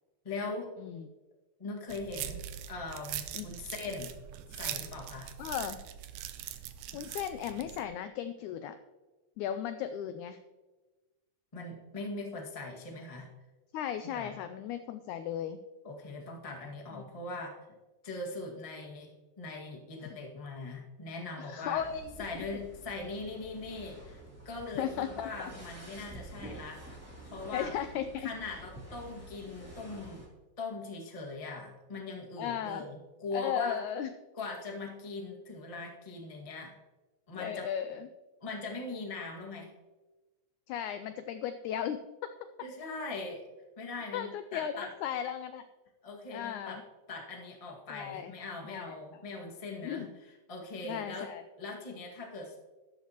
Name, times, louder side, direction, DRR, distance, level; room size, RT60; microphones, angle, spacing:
voice 1, 0.2-0.7 1.6-4.1 4.6-5.3 11.5-13.3 14.1-14.3 15.8-17.6 18.0-19.1 19.4-21.8 22.2-24.2 24.4-26.8 27.2-27.8 28.2-30.2 30.6-33.8 34.4-36.8 37.3-37.7 38.4-39.7 42.6-43.4 43.8-44.9 46.0-46.8 47.1-50.1 50.5-51.3 51.6-52.6, left 3 dB, 20° left, 0 dB, 1.0 m, -41 dB
sound 1, 1.9-7.8, right 11 dB, 80° right, 2.3 m, -41 dB
voice 2, 5.4-5.8 6.9-8.8 9.4-10.4 13.7-15.6 16.9-17.1 20.0-20.2 21.4-22.5 24.7-25.3 27.5-28.3 32.4-32.8 33.3-34.1 37.4-38.1 40.7-42.0 44.1-45.6 46.3-46.8 47.9-48.3 48.6-49.0 49.8-50.1 50.8-51.4, left 9 dB, 90° left, 10 dB, 1.7 m, -36 dB
sound 2, 21.7-30.3, right 1 dB, 5° right, 2.2 m, -49 dB
13.0 x 11.5 x 3.0 m, 1.2 s
omnidirectional pair, 4.0 m